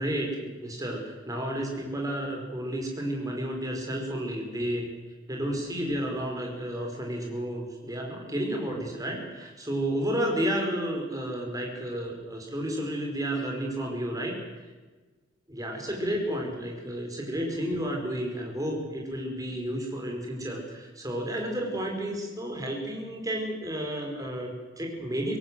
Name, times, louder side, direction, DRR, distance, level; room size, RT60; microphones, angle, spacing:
voice 1, 0.0-4.9 5.3-14.3 15.5-25.4, right 1 dB, 15° right, 1 dB, 5.4 m, -31 dB
25.0 x 17.5 x 7.9 m, 1.3 s
head